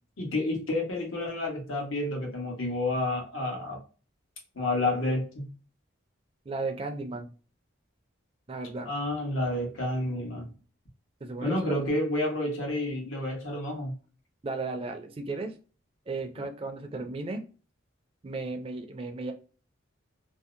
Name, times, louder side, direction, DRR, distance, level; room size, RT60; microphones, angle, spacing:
voice 1, 0.2-3.8 4.5-5.5 8.8-10.5 11.4-13.9, left 1 dB, 90° left, 0 dB, 1.1 m, -30 dB
voice 2, 6.5-7.3 8.5-8.9 11.2-11.8 14.4-15.5 16.1-17.4 18.2-19.3, right 3 dB, 30° right, 5 dB, 0.4 m, -35 dB
2.7 x 2.0 x 2.4 m, 0.36 s
head